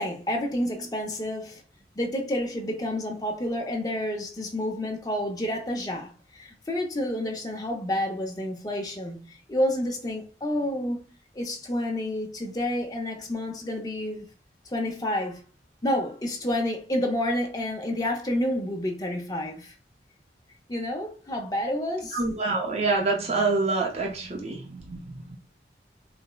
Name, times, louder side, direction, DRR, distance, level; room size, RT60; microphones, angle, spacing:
voice 1, 0.0-1.6 2.0-11.0 11.3-14.3 14.7-15.4 15.8-19.7 20.7-22.2, left 1 dB, 20° left, 0.5 m, -29 dB
voice 2, 22.1-25.4, right 3 dB, 35° right, 0.5 m, -27 dB
4.0 x 2.0 x 2.3 m
head